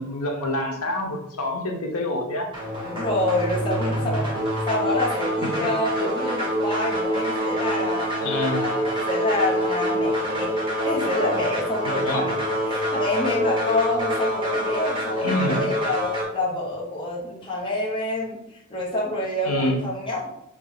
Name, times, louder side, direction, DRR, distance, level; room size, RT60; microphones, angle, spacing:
voice 1, 0.0-2.5 3.8-4.2 5.6-5.7 6.0-6.2 8.2-8.7 11.9-12.4 15.2-15.7 19.4-19.8, left 1 dB, 90° left, 2 dB, 0.8 m, -27 dB
sound 1, 2.5-16.2, equal, 25° right, 1.0 m, -26 dB
voice 2, 2.8-4.3 4.7-8.1 8.5-10.5 10.8-12.4 12.6-18.4 18.7-20.3, left 2 dB, 25° left, -5 dB, 0.9 m, -27 dB
2.8 x 2.7 x 3.9 m, 0.83 s
head